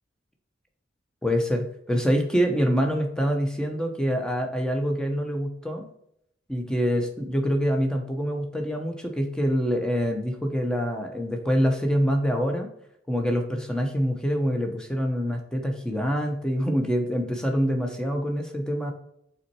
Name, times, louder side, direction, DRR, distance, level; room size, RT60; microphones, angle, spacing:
voice 1, 1.2-5.8 6.5-12.7 13.1-18.9, equal, 5° left, 3 dB, 1.0 m, -25 dB
5.9 x 4.1 x 4.6 m, 0.75 s
head